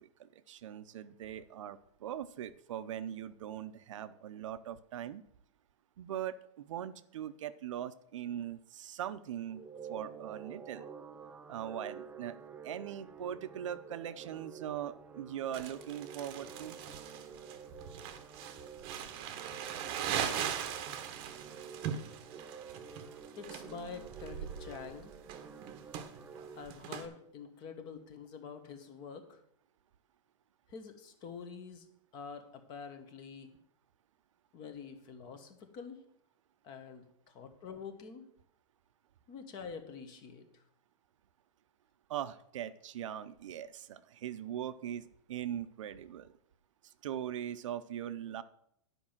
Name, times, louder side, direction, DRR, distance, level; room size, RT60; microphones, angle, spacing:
voice 1, 0.0-5.2 6.0-9.6 9.9-10.9 11.5-12.4 12.6-16.8 42.1-46.3 46.8-48.4, right 10 dB, 70° right, 13 dB, 0.6 m, -41 dB
sound 1, 9.5-26.7, right 6 dB, 10° right, 0.4 m, -50 dB
Crumpling crinkling, 15.5-27.1, right 8 dB, 30° right, 0.9 m, -40 dB
voice 2, 23.3-25.1 26.5-29.4 30.7-31.9 32.1-33.6 34.5-36.0 36.6-38.2 39.3-40.6, left 6 dB, 25° left, 8 dB, 1.1 m, -47 dB
9.8 x 5.4 x 7.3 m, 0.72 s
supercardioid pair, 160°, 17 cm